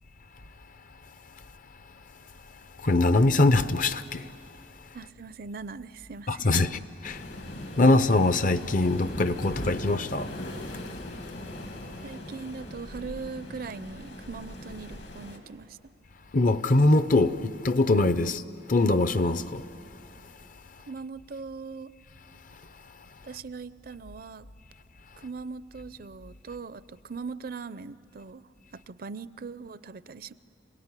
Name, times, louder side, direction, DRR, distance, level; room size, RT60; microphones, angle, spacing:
voice 1, 2.8-4.2 6.3-6.8 7.0-7.2 7.8-10.3 16.3-18.4 18.7-19.6, left 2 dB, 50° left, 0.7 m, -22 dB
voice 2, 4.9-6.7 12.0-15.9 18.2-18.3 20.9-21.9 23.2-24.5 25.2-28.4 28.7-30.3, right 4 dB, 55° right, 0.5 m, -40 dB
Waves surf, 7.0-15.4, left 1 dB, 70° left, 2.5 m, -39 dB
27.0 x 18.0 x 9.7 m
head